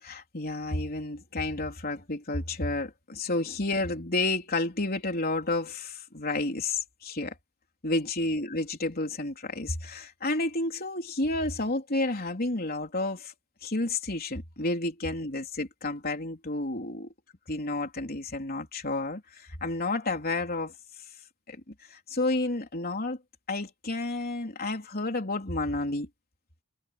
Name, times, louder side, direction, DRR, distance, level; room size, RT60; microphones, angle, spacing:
voice 1, 0.0-7.3 7.8-13.3 13.6-17.1 17.5-20.7 21.5-21.6 21.9-23.2 23.5-26.1, left 2 dB, 45° left, 3.9 m, -31 dB
head